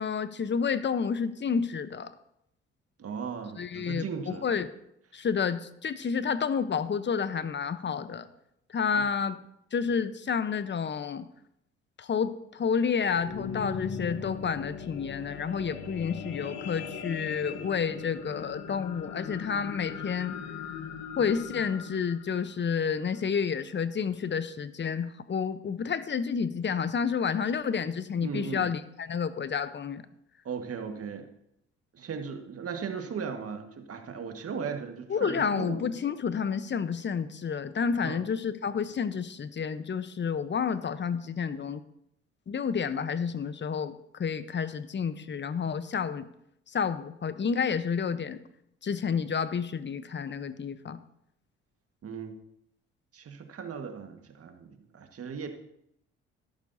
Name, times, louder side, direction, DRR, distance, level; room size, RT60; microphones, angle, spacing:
voice 1, 0.0-2.1 3.6-4.7 5.1-8.3 8.7-9.4 9.7-11.3 12.0-20.4 21.2-30.0 35.1-41.8 42.5-43.9 44.2-46.3 46.7-48.4 48.8-51.0, left 6 dB, 35° left, 13 dB, 0.9 m, -30 dB
voice 2, 3.0-4.4 8.9-9.0 28.2-28.7 30.5-31.3 31.9-35.8 38.0-38.2 52.0-52.3 53.1-55.5, right 6 dB, 50° right, 5 dB, 1.7 m, -37 dB
sound 1, 12.9-23.4 24.0-24.1, left 6 dB, 60° left, 1.3 m, -40 dB
13.0 x 11.5 x 2.8 m, 0.77 s
hypercardioid pair, 55°, 30 cm